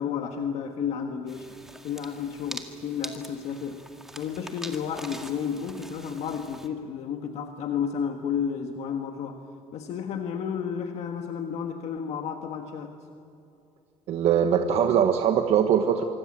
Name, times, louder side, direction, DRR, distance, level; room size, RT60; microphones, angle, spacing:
voice 1, 0.0-1.6 1.8-3.8 4.2-9.5 9.7-12.9, left 7 dB, 70° left, 5 dB, 1.5 m, -32 dB
sound 1, 1.3-6.7, right 1 dB, 5° right, 1.9 m, -43 dB
voice 2, 14.1-16.0, right 8 dB, 65° right, 6 dB, 1.3 m, -22 dB
25.5 x 24.0 x 7.6 m, 2.8 s
cardioid pair, 155°, 12 cm